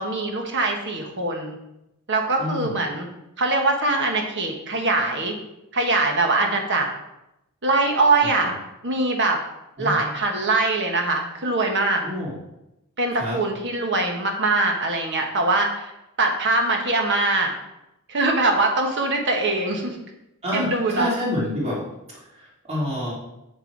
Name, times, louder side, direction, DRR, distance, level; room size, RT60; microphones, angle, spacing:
voice 1, 0.0-1.6 2.1-3.1 3.4-5.4 5.7-6.9 7.6-8.5 8.8-9.4 9.8-12.0 13.0-15.9 16.2-17.5 18.1-20.0 20.5-21.1, right 2 dB, 55° right, 3 dB, 1.5 m, -22 dB
voice 2, 2.4-2.7 8.4-8.5 9.8-9.9 12.0-12.3 13.2-13.4 20.4-21.8 22.7-23.1, left 1 dB, 30° right, -5 dB, 2.9 m, -27 dB
7.8 x 6.9 x 4.7 m, 0.89 s
head